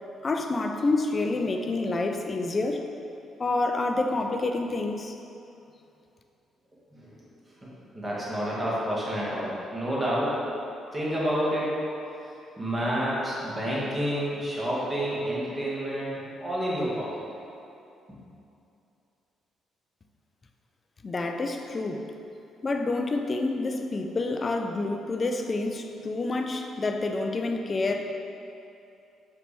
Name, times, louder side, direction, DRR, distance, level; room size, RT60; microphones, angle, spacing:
voice 1, 0.2-2.9 3.4-5.1 21.0-22.1 22.6-28.1, left 2 dB, 35° left, 5 dB, 0.4 m, -28 dB
voice 2, 6.9-10.4 10.9-11.8 12.2-17.1 18.1-18.2, equal, 20° right, -7 dB, 1.4 m, -29 dB
4.9 x 3.3 x 3.1 m, 2.7 s
supercardioid pair, 70°, 0 cm